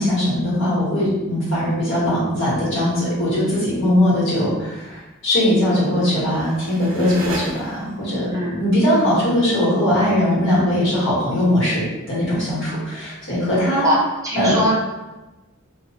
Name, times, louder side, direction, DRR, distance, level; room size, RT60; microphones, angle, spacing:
voice 1, 0.0-13.9 14.3-14.5, left 1 dB, 65° left, -9 dB, 1.5 m, -20 dB
sound 1, 5.8-8.2, right 2 dB, 90° right, 0.6 m, -35 dB
voice 2, 14.2-14.7, equal, 15° right, -5 dB, 0.7 m, -21 dB
2.7 x 2.2 x 2.9 m, 1.1 s
head